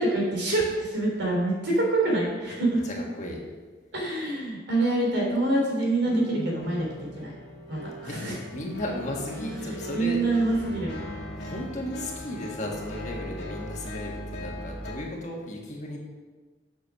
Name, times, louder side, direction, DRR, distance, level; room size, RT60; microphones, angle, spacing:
voice 1, 0.0-2.8 3.9-6.8 7.2-7.3 7.7-8.4 9.4-10.9, right 2 dB, 65° right, -3 dB, 3.4 m, -26 dB
voice 2, 2.8-3.4 8.0-10.3 11.3-16.0, left 1 dB, 35° left, -1 dB, 1.6 m, -35 dB
sound 1, 6.0-14.9, left 1 dB, 55° left, 1.7 m, -38 dB
8.0 x 6.5 x 6.3 m, 1.3 s
head